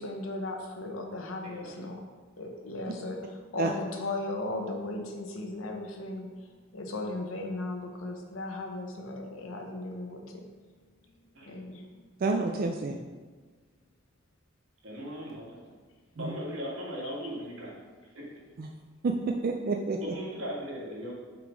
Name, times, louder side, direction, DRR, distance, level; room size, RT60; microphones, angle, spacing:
voice 1, 0.0-2.0 2.4-6.3 6.7-10.4 11.5-12.0 17.0-17.1, left 2 dB, 80° left, 2 dB, 0.9 m, -36 dB
voice 2, 12.2-13.0 16.2-16.4 18.6-18.7 19.0-20.2, right 3 dB, 50° right, 2 dB, 0.4 m, -29 dB
voice 3, 14.8-15.7 16.2-17.7 18.1-18.3 20.0-21.1, equal, 75° right, -5 dB, 1.9 m, -38 dB
5.8 x 3.8 x 5.1 m, 1.4 s
head